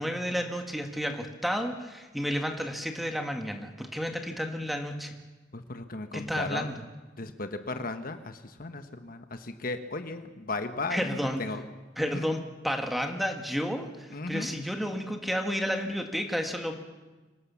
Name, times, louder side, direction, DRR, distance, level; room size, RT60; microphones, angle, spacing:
voice 1, 0.0-5.2 6.1-6.7 10.9-11.4 12.0-16.7, equal, ahead, 4 dB, 1.9 m, -31 dB
voice 2, 5.5-6.8 7.2-11.6 12.0-12.4 14.1-14.5, left 3 dB, 50° left, 8 dB, 1.3 m, -36 dB
26.0 x 18.0 x 7.2 m, 1.2 s
head